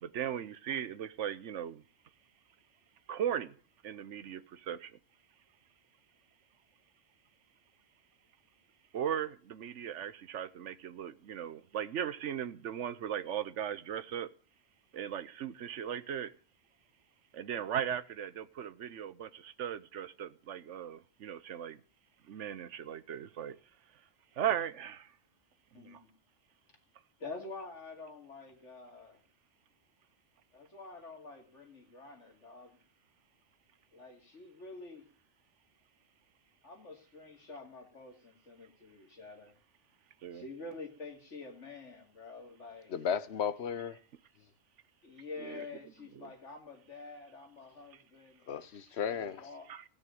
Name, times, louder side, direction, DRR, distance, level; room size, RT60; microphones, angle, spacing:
voice 1, 0.0-1.8 3.1-3.5 3.8-4.9 8.9-14.3 14.9-16.3 17.3-21.8 22.3-23.6 24.4-25.1 25.8-26.0 40.2-40.4 45.4-45.6 46.2-46.3 49.7-49.8, right 9 dB, 80° right, 1.2 m, -37 dB
voice 2, 25.7-26.1 27.2-29.2 30.5-32.8 33.9-35.1 36.6-39.6 40.3-42.9 44.4-44.5 45.0-48.4 49.0-49.7, left 3 dB, 80° left, 2.9 m, -48 dB
voice 3, 42.9-44.0 48.5-49.5, left 7 dB, 65° left, 1.1 m, -34 dB
16.0 x 6.6 x 9.0 m
omnidirectional pair, 1.2 m